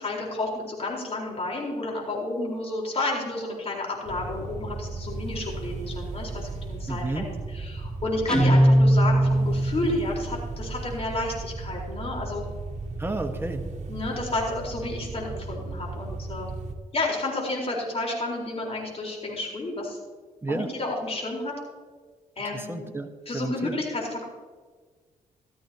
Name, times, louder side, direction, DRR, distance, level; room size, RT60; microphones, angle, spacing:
voice 1, 0.0-12.4 13.9-16.5 16.9-20.0 20.5-21.5 22.4-22.9 23.3-24.3, left 2 dB, 45° left, -2 dB, 4.3 m, -31 dB
sound 1, 4.1-16.8, right 3 dB, 55° right, 1.4 m, -36 dB
voice 2, 6.9-7.3 13.0-13.6 20.4-20.7 22.5-23.1 23.3-23.7, right 2 dB, 15° right, 4 dB, 1.5 m, -31 dB
Guitar, 8.3-10.0, right 1 dB, 5° left, 2.1 m, -19 dB
14.0 x 14.0 x 2.9 m, 1.5 s
cardioid pair, 70°, 14 cm